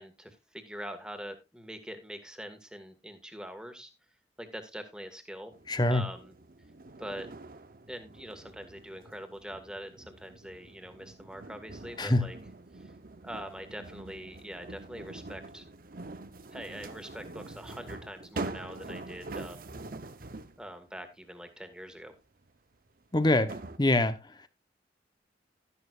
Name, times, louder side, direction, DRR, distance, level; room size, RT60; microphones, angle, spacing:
voice 1, 0.0-3.9 4.4-5.5 5.9-6.3 7.0-7.3 7.9-12.4 12.7-12.9 13.2-15.6 16.5-19.7 20.6-22.1, equal, 5° right, 1.8 m, -43 dB
sound 1, 5.5-20.7 22.4-22.5 23.2-23.8, right 2 dB, 50° right, 0.8 m, -44 dB
voice 2, 5.7-6.0 12.0-12.3 23.1-23.5 23.8-24.2, left 1 dB, 25° left, 1.0 m, -24 dB
12.5 x 11.0 x 2.5 m
head